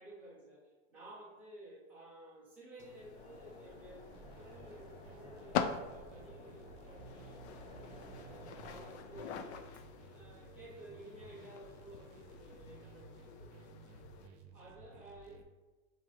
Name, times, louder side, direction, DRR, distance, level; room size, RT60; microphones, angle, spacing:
voice 1, 0.0-4.1 4.4-7.4 8.1-9.5 10.1-13.7 14.5-15.5, right 1 dB, 5° right, -9 dB, 0.3 m, -54 dB
sound 1, 2.8-14.3, left 7 dB, 65° left, 0.5 m, -45 dB
sound 2, 3.1-9.6, left 1 dB, 15° left, 0.8 m, -55 dB
sound 3, 4.1-15.4, right 4 dB, 60° right, 0.7 m, -56 dB
6.6 x 2.7 x 2.9 m, 1.2 s
supercardioid pair, 170°, 36 cm